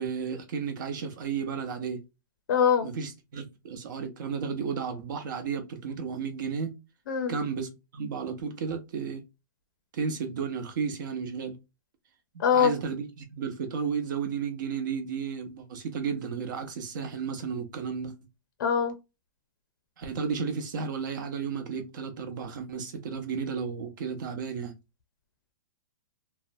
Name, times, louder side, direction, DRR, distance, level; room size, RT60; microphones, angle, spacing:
voice 1, 0.0-2.0 2.8-6.7 7.3-9.2 9.9-11.5 12.3-18.1 20.0-24.7, right 6 dB, 60° right, 0.8 m, -33 dB
voice 2, 2.5-2.9 7.1-7.3 12.4-12.7 18.6-18.9, left 7 dB, 65° left, 0.5 m, -23 dB
2.6 x 2.1 x 2.5 m
hypercardioid pair, 150°, 12 cm